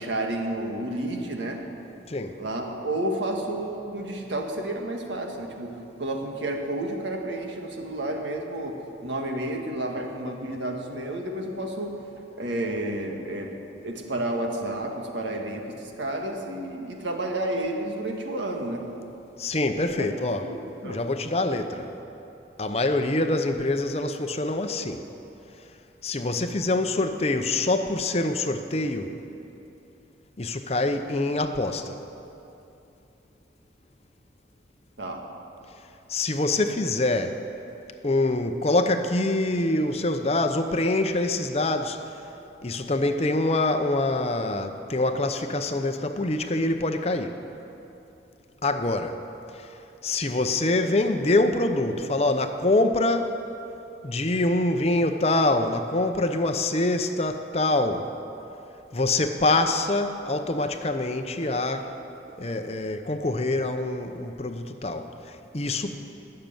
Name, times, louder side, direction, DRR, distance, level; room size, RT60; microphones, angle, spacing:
voice 1, 0.0-1.6 2.4-12.0 12.3-13.5 13.8-18.9 20.0-20.1 20.4-21.0 35.0-35.3, right 1 dB, 75° right, 2 dB, 1.7 m, -31 dB
voice 2, 2.1-2.4 19.4-20.4 20.8-21.9 22.6-25.1 26.0-29.1 30.4-32.0 36.1-37.4 38.0-42.0 42.6-47.4 48.6-49.2 49.5-49.7 50.0-53.4 54.0-58.1 58.9-61.9 62.4-65.9, left 2 dB, 35° left, 7 dB, 0.7 m, -25 dB
19.0 x 6.7 x 9.1 m, 2.9 s
head